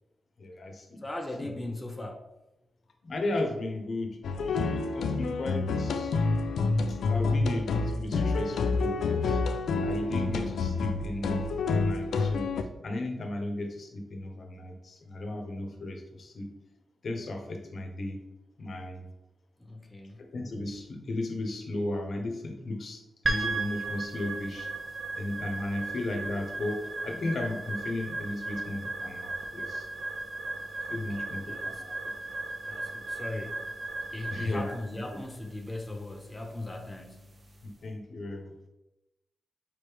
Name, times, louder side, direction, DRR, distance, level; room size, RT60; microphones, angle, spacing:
voice 1, 0.4-1.0 1.4-1.5 3.0-6.2 6.9-9.4 9.8-11.4 11.8-12.5 12.8-16.5 17.0-18.2 18.6-19.0 20.2-24.7 25.2-29.9 30.9-31.9 34.3-34.7 37.6-38.7, left 2 dB, 60° left, 4 dB, 0.7 m, -35 dB
voice 2, 1.0-2.3 19.6-20.2 30.9-31.8 32.7-33.7 34.1-37.3, left 2 dB, 15° left, 3 dB, 0.5 m, -39 dB
sound 1, 4.2-12.6, left 3 dB, 90° left, 0.3 m, -28 dB
sound 2, 23.2-37.6, right 3 dB, 35° right, 0.7 m, -36 dB
4.9 x 3.1 x 3.4 m, 0.94 s
cardioid pair, 75°, 0 cm